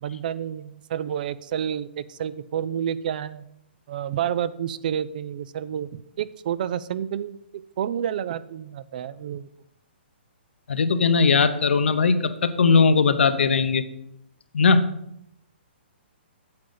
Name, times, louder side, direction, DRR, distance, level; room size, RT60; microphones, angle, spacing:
voice 1, 0.0-3.5 3.9-9.5, right 9 dB, 50° right, 17 dB, 0.4 m, -29 dB
voice 2, 10.7-13.8 14.5-14.9, left 4 dB, 85° left, 11 dB, 0.8 m, -19 dB
8.6 x 7.7 x 3.9 m, 0.78 s
hypercardioid pair, 155°, 6 cm